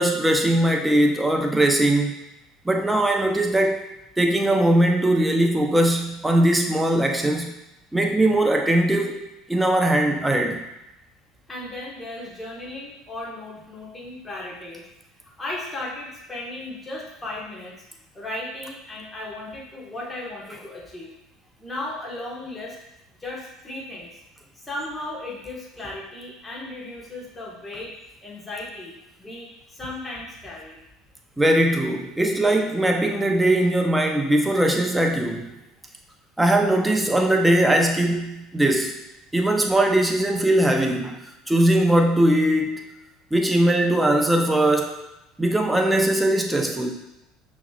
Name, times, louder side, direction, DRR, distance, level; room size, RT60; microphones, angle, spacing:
voice 1, 0.0-2.1 2.6-3.8 4.2-7.5 7.9-10.6 31.4-35.5 36.4-39.0 39.3-41.2 41.5-42.9 43.3-45.0 45.4-46.9, right 1 dB, 10° right, 3 dB, 0.7 m, -20 dB
voice 2, 11.5-14.8 15.4-17.8 18.1-21.1 21.6-22.8 23.2-24.2 24.6-27.9 28.2-28.9 29.2-30.8, left 2 dB, 20° left, -4 dB, 1.5 m, -35 dB
5.7 x 3.1 x 2.4 m, 0.92 s
hypercardioid pair, 70°, 0 cm